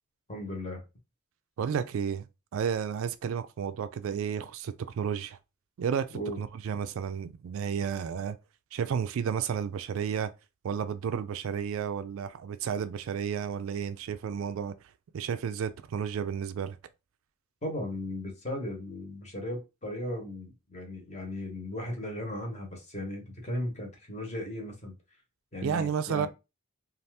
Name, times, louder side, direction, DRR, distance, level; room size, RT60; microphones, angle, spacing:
voice 1, 0.3-0.8 6.1-6.4 17.6-24.9 25.5-26.3, left 1 dB, 30° left, 0.9 m, -36 dB
voice 2, 1.6-2.2 2.5-5.4 5.8-8.4 8.7-10.3 10.6-14.8 15.1-16.8 25.6-26.3, right 7 dB, 60° right, 0.3 m, -32 dB
2.7 x 2.4 x 3.3 m
head